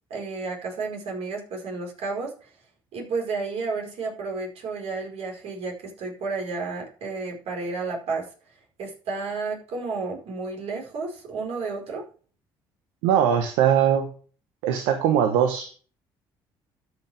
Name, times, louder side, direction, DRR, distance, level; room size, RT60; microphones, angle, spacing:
voice 1, 0.1-2.5 2.9-8.3 8.8-12.1, right 4 dB, 65° right, 0 dB, 4.8 m, -31 dB
voice 2, 13.0-14.1 14.6-15.8, right 9 dB, 80° right, 6 dB, 1.1 m, -21 dB
13.0 x 6.2 x 3.5 m, 0.40 s
hypercardioid pair, 65°, 11 cm